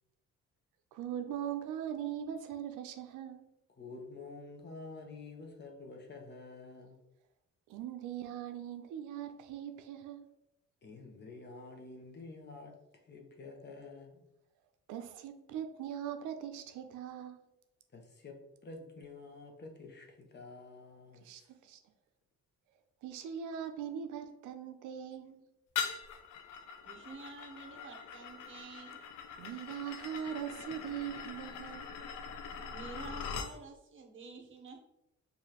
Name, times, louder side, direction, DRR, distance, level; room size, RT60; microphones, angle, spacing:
voice 1, 0.9-3.5 7.7-10.2 14.9-17.4 21.2-21.8 23.0-25.4 29.4-31.9, right 9 dB, 85° right, 0.5 m, -41 dB
voice 2, 3.8-7.0 10.8-12.7 13.1-14.2 17.9-18.3 18.6-21.3, left 3 dB, 35° left, 0.8 m, -49 dB
sound 1, 25.8-33.5, left 6 dB, 80° left, 0.6 m, -42 dB
voice 3, 26.8-29.0 32.7-34.8, right 4 dB, 40° right, 0.8 m, -49 dB
4.8 x 2.6 x 2.9 m
cardioid pair, 90°, 30 cm